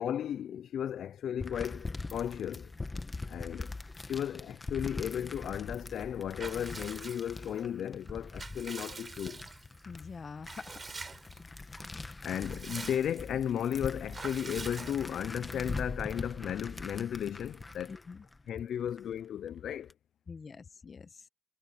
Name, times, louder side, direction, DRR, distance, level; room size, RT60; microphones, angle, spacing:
voice 1, 0.0-2.7 3.3-3.8 4.1-9.5 12.2-18.0 18.5-19.9, left 9 dB, 70° left, 0.4 m, -35 dB
sound 1, 1.4-19.0 19.5-19.9, left 3 dB, 20° left, 1.3 m, -42 dB
Water / Bathtub (filling or washing) / Liquid, 6.4-7.6 8.1-9.8 10.4-11.4 11.8-11.9 12.2-13.4 14.1-15.4, right 4 dB, 30° right, 4.5 m, -45 dB
voice 2, 9.8-11.3 17.9-18.2 20.3-21.3, left 5 dB, 40° left, 1.0 m, -46 dB
cardioid pair, 100°, 0 cm